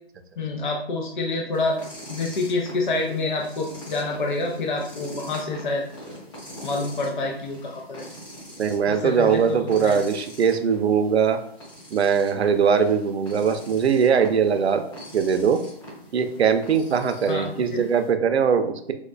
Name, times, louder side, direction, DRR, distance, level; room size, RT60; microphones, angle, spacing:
voice 1, 0.4-1.8 2.1-5.8 6.6-8.1 8.9-10.0 17.3-17.8, left 3 dB, 50° left, 0 dB, 0.5 m, -27 dB
sound 1, 1.5-18.1, equal, 30° left, 1.5 m, -43 dB
voice 2, 8.6-11.4 11.9-14.8 15.1-15.6 16.1-18.9, right 6 dB, 90° right, 8 dB, 0.6 m, -21 dB
4.6 x 2.1 x 2.4 m, 0.67 s
hypercardioid pair, 170°, 31 cm